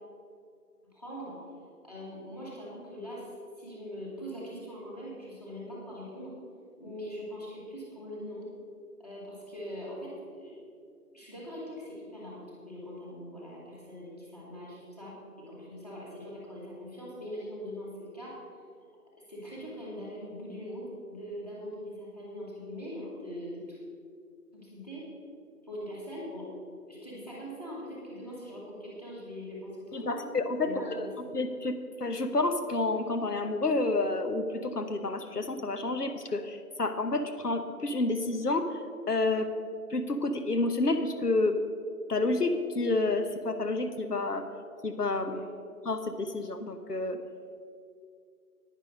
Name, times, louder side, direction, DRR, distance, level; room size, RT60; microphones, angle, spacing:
voice 1, 0.9-1.4 1.8-6.3 6.8-8.5 9.0-10.6 11.1-15.1 15.5-18.3 19.3-23.8 24.5-25.1 25.6-26.4 26.9-30.2 30.6-31.1 45.3-45.4, equal, 25° left, -7 dB, 2.4 m, -42 dB
voice 2, 29.9-31.1 31.3-38.8 39.1-39.5 39.9-41.6 42.1-44.5 44.8-45.4 45.8-47.2, left 2 dB, 80° left, 8 dB, 1.0 m, -29 dB
10.0 x 9.7 x 5.2 m, 2.3 s
figure-of-eight pair, 180°, 46 cm